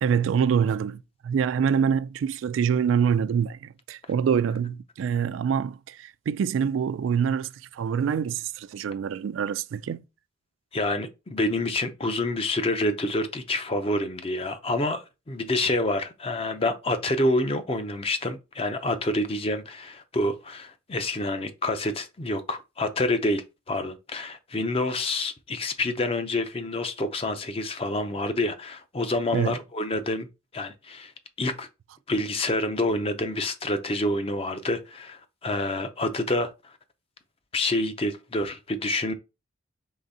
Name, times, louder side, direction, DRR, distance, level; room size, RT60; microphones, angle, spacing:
voice 1, 0.0-10.0 29.3-29.6, right 7 dB, 85° right, 0.3 m, -25 dB
voice 2, 10.7-30.3 30.5-31.1 31.4-31.7 32.1-36.5 37.5-39.1, left 2 dB, 30° left, 0.5 m, -27 dB
3.8 x 3.4 x 4.1 m
head